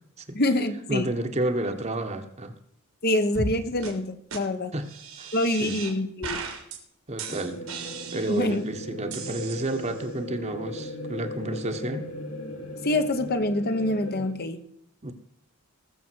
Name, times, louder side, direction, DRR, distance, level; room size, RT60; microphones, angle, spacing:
voice 1, 0.3-1.1 3.0-4.7 5.3-6.4 8.3-8.6 12.8-14.6, left 1 dB, 45° left, 8 dB, 1.2 m, -26 dB
voice 2, 0.9-2.6 4.7-4.9 5.2-5.3 5.6-5.8 7.1-7.6 8.1-12.1 15.0-15.1, right 1 dB, 30° right, 7 dB, 1.3 m, -30 dB
sound 1, 3.3-3.5 3.8-3.9 4.3-4.4 4.8-5.9 6.2-6.8 7.2-8.6 9.1-10.0, right 4 dB, 85° right, 3.3 m, -36 dB
sound 2, 7.3-14.3, left 1 dB, 85° left, 4.2 m, -38 dB
20.0 x 7.2 x 4.7 m, 0.72 s
head